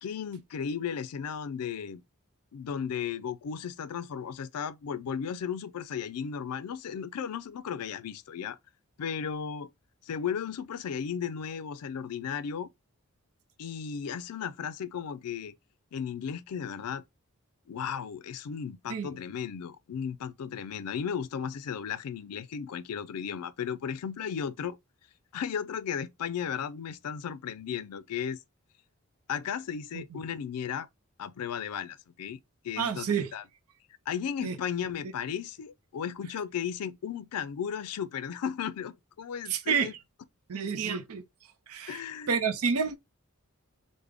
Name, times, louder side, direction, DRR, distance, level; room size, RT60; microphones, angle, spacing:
voice 1, 0.0-2.0 2.5-8.6 9.0-9.7 10.0-12.7 13.6-15.5 15.9-17.0 17.7-24.8 25.3-28.4 29.3-30.9 31.2-32.4 32.6-33.4 34.1-39.9 41.9-42.4, left 7 dB, 90° left, 0.4 m, -35 dB
voice 2, 32.8-33.3 34.4-34.6 39.5-39.9 40.5-41.2 41.7-43.0, right 6 dB, 80° right, 0.5 m, -29 dB
3.5 x 2.1 x 3.4 m
head